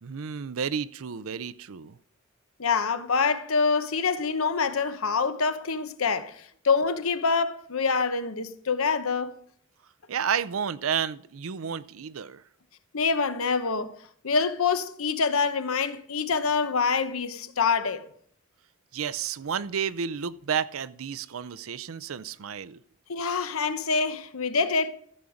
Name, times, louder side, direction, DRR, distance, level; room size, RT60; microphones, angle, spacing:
voice 1, 0.0-2.0 10.1-12.4 18.9-22.8, right 7 dB, 80° right, 0.5 m, -31 dB
voice 2, 2.6-9.4 12.9-14.0 14.2-18.1 23.1-24.9, left 5 dB, 85° left, 1.0 m, -26 dB
14.5 x 7.2 x 5.0 m
head